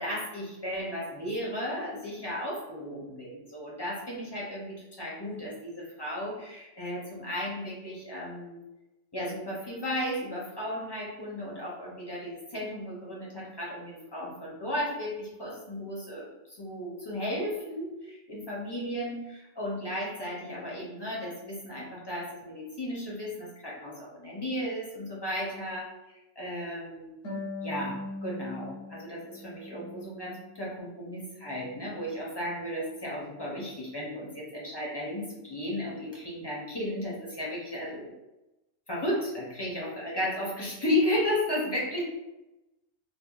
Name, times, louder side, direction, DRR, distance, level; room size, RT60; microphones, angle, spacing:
voice 1, 0.0-8.6 9.1-27.1 27.6-38.1 38.9-42.0, left 1 dB, 35° left, -5 dB, 0.4 m, -34 dB
Harp, 27.2-30.6 31.0-32.1, left 2 dB, 85° left, 1.2 m, -41 dB
3.3 x 2.1 x 2.3 m, 0.98 s
omnidirectional pair, 1.3 m